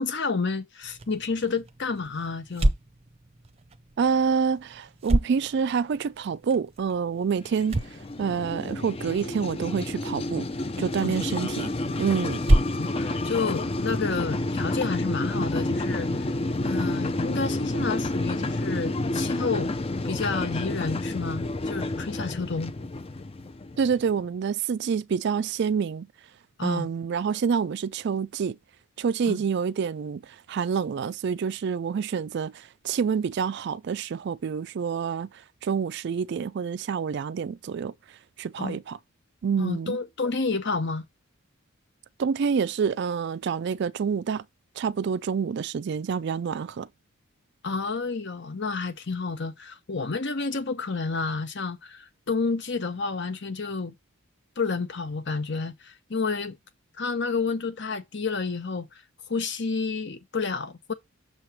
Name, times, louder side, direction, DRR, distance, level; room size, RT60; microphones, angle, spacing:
voice 1, 0.0-2.7 11.0-11.2 12.8-16.3 16.6-19.7 20.0-22.7 26.6-26.9 29.3-29.4 38.6-38.8 39.6-41.0 47.6-53.9 54.6-56.6 57.0-59.0 59.3-60.9, left 4 dB, 55° left, 0.9 m, -30 dB
sound 1, 0.8-14.4, right 1 dB, 25° right, 0.7 m, -31 dB
voice 2, 4.0-10.5 10.8-11.7 12.0-12.4 23.8-26.1 26.6-28.6 29.0-35.3 35.6-37.9 38.4-39.0 39.4-40.0 42.2-44.4 44.8-46.9, right 6 dB, 50° right, 0.3 m, -27 dB
sound 2, 7.4-24.1, left 2 dB, 25° left, 0.5 m, -30 dB
6.8 x 3.2 x 5.9 m
head